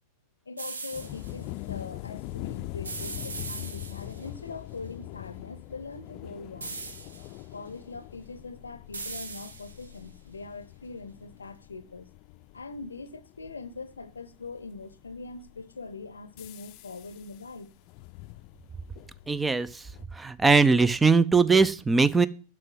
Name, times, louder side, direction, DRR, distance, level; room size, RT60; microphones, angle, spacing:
voice 1, 0.5-6.8 7.5-12.1 12.5-17.7, left 4 dB, 75° left, 0.7 m, -42 dB
sound 1, 0.6-1.3 2.8-4.3 6.6-7.4 8.9-10.0, right 4 dB, 75° right, 1.0 m, -39 dB
sound 2, 0.9-20.1, left 17 dB, 45° left, 0.5 m, -43 dB
voice 2, 19.3-19.8 20.1-22.3, right 4 dB, 10° right, 0.5 m, -21 dB
7.7 x 6.0 x 7.8 m
figure-of-eight pair, 90°, 0 cm